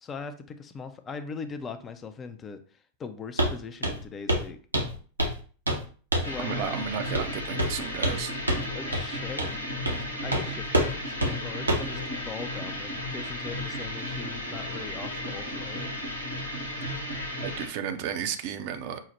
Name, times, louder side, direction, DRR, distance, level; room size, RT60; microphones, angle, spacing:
voice 1, 0.0-2.6 3.0-4.6 6.2-6.7 8.7-9.7 10.2-15.9, left 5 dB, 25° left, 9 dB, 0.4 m, -40 dB
Walk footsteps, 3.4-3.6 3.8-4.0 4.3-4.5 4.7-5.4 5.7-5.8 6.1-6.4 7.1-7.3 7.6-8.2 8.5-8.6 8.9-9.0 9.4-9.5 9.9-10.0 10.3-10.4 10.7-10.9 11.2-11.3 11.7-11.9, right 1 dB, 80° right, 0.7 m, -26 dB
sound 1, 6.2-17.7, left 1 dB, 90° left, 1.1 m, -34 dB
voice 2, 6.4-8.3 17.4-19.0, right 8 dB, 45° right, 8 dB, 0.5 m, -33 dB
5.5 x 2.0 x 3.0 m, 0.40 s
figure-of-eight pair, 90°, 0 cm